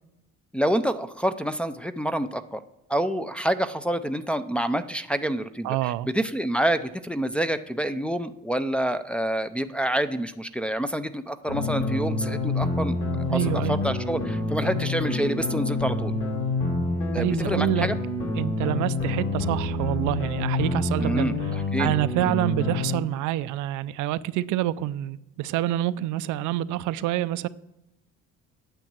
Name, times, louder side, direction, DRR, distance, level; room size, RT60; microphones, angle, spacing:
voice 1, 0.5-2.6 2.9-13.4 13.7-16.1 17.1-18.0 21.0-22.0, right 1 dB, 5° left, 0.4 m, -27 dB
voice 2, 5.6-6.1 13.3-13.8 17.2-17.9 18.4-21.3 21.8-27.5, right 14 dB, 85° right, 0.5 m, -27 dB
sound 1, 11.5-23.0, left 2 dB, 45° left, 2.6 m, -27 dB
9.1 x 6.9 x 7.4 m
cardioid pair, 135°, 29 cm